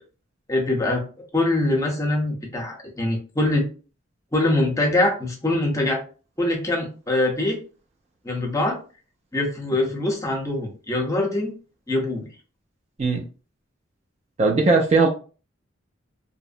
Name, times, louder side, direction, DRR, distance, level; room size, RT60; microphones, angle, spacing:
voice 1, 0.5-1.0 1.3-3.7 4.3-6.0 6.4-7.6 8.2-8.8 9.3-11.5 11.9-12.3, left 2 dB, 15° left, 0 dB, 0.6 m, -23 dB
voice 2, 14.4-15.1, right 3 dB, 35° right, 1 dB, 0.3 m, -18 dB
2.7 x 2.0 x 2.5 m, 0.36 s
head